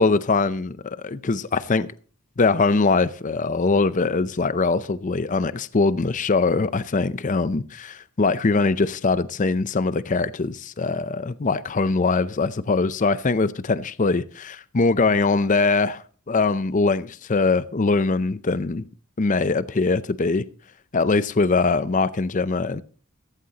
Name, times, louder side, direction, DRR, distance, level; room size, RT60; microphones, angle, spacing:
voice 1, 0.0-1.9 2.4-18.8 19.2-20.4 20.9-22.8, left 3 dB, 35° left, 0.5 m, -22 dB
15.5 x 15.0 x 2.9 m
head